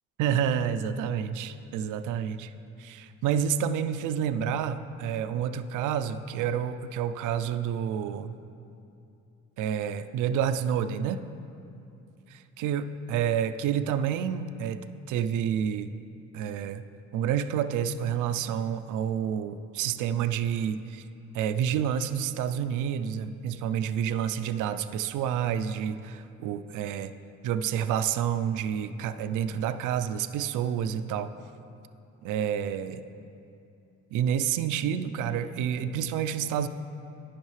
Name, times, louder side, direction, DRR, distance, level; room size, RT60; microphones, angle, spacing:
voice 1, 0.2-2.5 2.8-8.3 9.6-11.2 12.3-14.8 15.1-15.9 16.3-16.8 17.1-21.0 21.3-27.1 27.4-31.3 32.2-33.0 34.1-36.7, right 8 dB, 85° right, 11 dB, 0.4 m, -29 dB
12.0 x 9.8 x 3.2 m, 2.7 s
cardioid pair, 90°, 30 cm